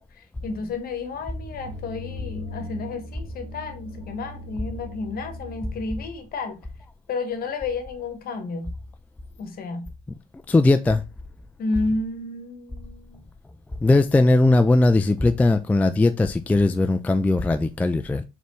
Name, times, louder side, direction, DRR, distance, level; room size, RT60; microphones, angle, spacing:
voice 1, 0.0-6.6 7.1-8.7 9.4-9.9 11.6-13.2, left 3 dB, 50° left, 1.1 m, -31 dB
sound 1, 0.9-5.9, left 1 dB, 85° right, 1.0 m, -39 dB
voice 2, 10.5-11.0 13.8-18.2, left 2 dB, 10° left, 0.3 m, -19 dB
4.2 x 3.3 x 3.0 m
hypercardioid pair, 75°, 20 cm